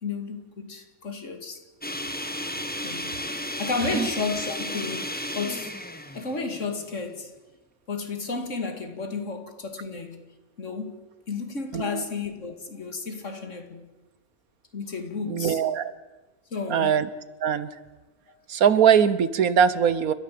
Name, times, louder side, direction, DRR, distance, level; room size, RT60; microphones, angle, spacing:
voice 1, 0.0-1.6 2.8-3.2 3.6-5.8 6.1-7.3 7.9-10.2 10.6-11.0 11.3-13.9 14.7-15.7 16.5-17.0, left 4 dB, 55° left, 2.5 m, -32 dB
sound 1, 1.8-7.0, left 1 dB, 5° left, 1.4 m, -33 dB
voice 2, 11.7-12.0 15.3-15.9 16.7-17.1 17.4-17.7 18.5-20.1, right 8 dB, 70° right, 1.4 m, -21 dB
30.0 x 13.5 x 7.6 m
omnidirectional pair, 1.6 m